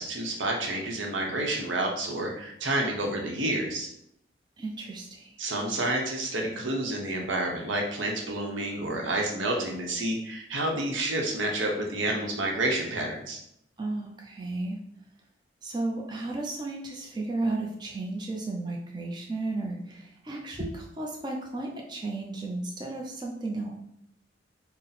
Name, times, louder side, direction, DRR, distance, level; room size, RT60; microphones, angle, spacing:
voice 1, 0.0-3.9 5.4-13.4, right 1 dB, 85° right, 0 dB, 0.8 m, -29 dB
voice 2, 4.6-5.4 13.8-14.8 15.6-23.7, right 2 dB, 25° right, -1 dB, 0.4 m, -34 dB
4.1 x 2.0 x 4.0 m, 0.75 s
head